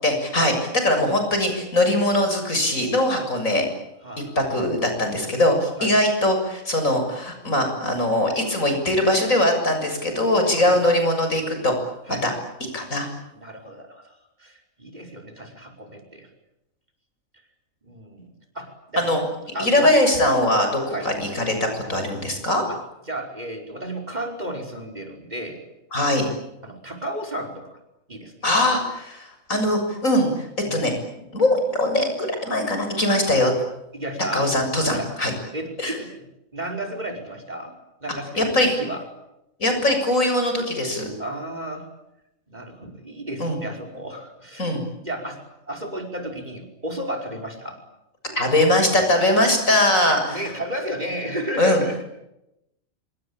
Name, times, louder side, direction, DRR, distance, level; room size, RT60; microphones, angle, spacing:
voice 1, 0.0-3.7 4.2-11.7 12.2-12.3 12.7-13.1 19.0-19.3 19.6-22.6 25.9-26.3 28.4-30.9 31.3-33.5 34.3-35.3 35.8-36.0 38.4-38.8 39.6-41.1 43.4-43.6 44.6-44.8 48.4-50.5 51.6-51.8, left 1 dB, 75° left, 5 dB, 7.5 m, -21 dB
voice 2, 4.0-4.4 5.8-6.0 10.7-10.8 12.1-12.4 13.4-14.0 14.4-16.3 17.8-19.2 19.5-19.9 20.9-21.1 22.7-22.8 23.1-25.6 26.6-27.8 28.1-28.4 30.6-30.8 33.9-34.5 34.9-35.1 35.5-36.1 36.5-37.7 38.0-38.5 38.8-39.0 41.2-41.9 42.5-44.7 45.0-45.4 45.7-47.8 50.0-52.0, right 1 dB, 30° right, 6 dB, 5.4 m, -33 dB
27.0 x 24.0 x 8.8 m, 0.87 s
omnidirectional pair, 1.4 m